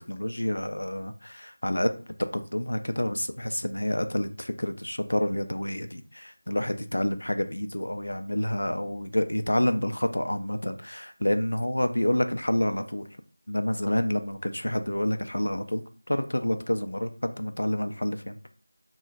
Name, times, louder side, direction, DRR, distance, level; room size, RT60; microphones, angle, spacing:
voice 1, 0.1-2.0 2.3-13.1 13.5-18.4, left 1 dB, 80° left, 8 dB, 0.4 m, -28 dB
2.9 x 2.1 x 2.4 m, 0.40 s
figure-of-eight pair, 170°, 0 cm